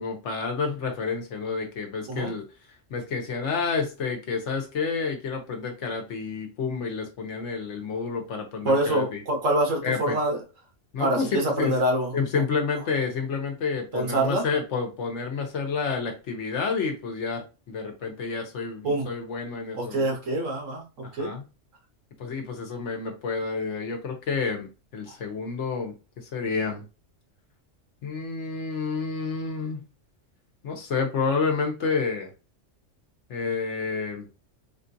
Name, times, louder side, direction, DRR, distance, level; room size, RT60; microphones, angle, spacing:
voice 1, 0.0-2.4 2.9-9.2 9.8-10.2 10.9-11.8 12.1-20.1 21.0-21.4 22.2-26.8 28.0-29.8 30.6-32.3 33.3-34.3, left 5 dB, 65° left, 3 dB, 1.1 m, -29 dB
voice 2, 8.6-10.4 11.0-12.1 13.9-14.4 18.8-19.1 19.8-21.3, right 1 dB, 80° right, 1 dB, 1.4 m, -25 dB
3.7 x 2.3 x 2.6 m, 0.32 s
omnidirectional pair, 1.3 m